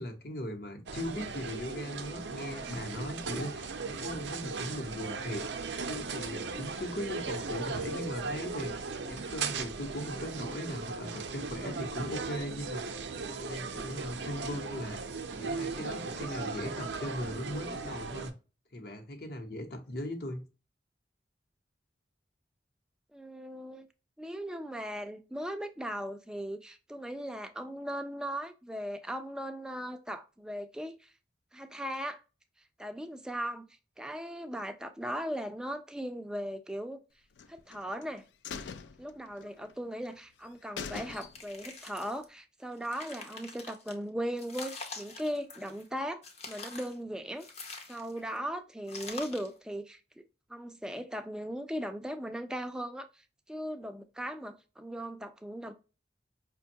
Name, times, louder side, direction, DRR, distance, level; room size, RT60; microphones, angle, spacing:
voice 1, 0.0-8.7 9.1-13.0 13.3-15.0 15.3-18.3 18.7-20.4, left 1 dB, 60° left, 0.9 m, -39 dB
sound 1, 0.9-18.3, right 4 dB, 75° right, 0.5 m, -37 dB
voice 2, 23.1-23.9 24.2-31.1 31.5-32.2 32.8-33.7 34.0-37.0 37.5-38.2 39.0-46.2 46.5-47.5 47.9-50.2 50.5-55.7, equal, 5° right, 0.3 m, -38 dB
sound 2, 37.4-38.1 38.4-39.7 40.1-40.2 40.5-40.6 40.8-41.7 42.0-42.1, left 6 dB, 80° left, 0.4 m, -42 dB
sound 3, 41.2-42.2 42.7-43.9 44.4-45.9 46.2-47.0 47.4-48.3 48.9-49.6, left 3 dB, 35° left, 0.6 m, -45 dB
5.1 x 2.2 x 2.7 m
head